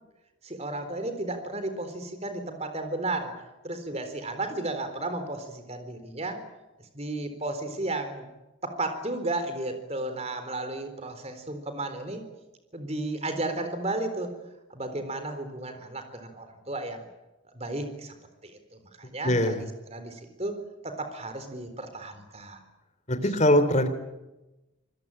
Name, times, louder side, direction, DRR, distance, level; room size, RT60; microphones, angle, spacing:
voice 1, 0.4-3.3 3.6-6.4 6.9-8.3 8.6-12.2 12.7-14.3 14.7-17.1 17.5-18.1 18.4-18.6 19.0-22.6, right 2 dB, 30° right, 8 dB, 3.9 m, -33 dB
voice 2, 19.2-19.6 23.1-23.9, left 1 dB, 35° left, 9 dB, 3.1 m, -22 dB
26.0 x 20.5 x 8.8 m, 1.0 s
head